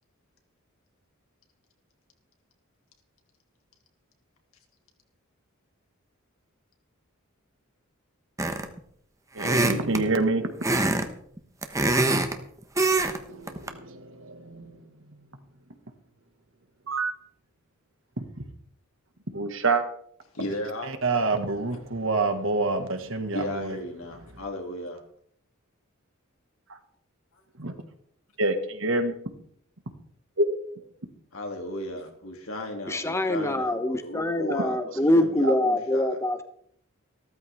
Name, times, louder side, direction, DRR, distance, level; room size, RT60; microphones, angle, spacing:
sound 1, 8.4-8.8 9.4-10.0 10.6-11.1 11.4-12.3 12.8-13.2 13.5-13.7, right 2 dB, 15° right, 1.2 m, -23 dB
voice 1, 9.4-10.5 13.3-14.8 16.9-17.1 18.2-18.3 19.3-19.8 20.9-23.8 27.6-27.7 28.4-29.1 30.4-30.5 35.4-35.5, right 3 dB, 65° right, 6 dB, 1.9 m, -27 dB
voice 2, 20.3-20.9 21.7-21.8 23.3-25.0 31.3-36.2, left 1 dB, 80° left, 2 dB, 3.0 m, -35 dB
voice 3, 32.9-36.4, left 1 dB, 15° left, 8 dB, 1.0 m, -24 dB
15.5 x 13.5 x 3.7 m, 0.65 s
head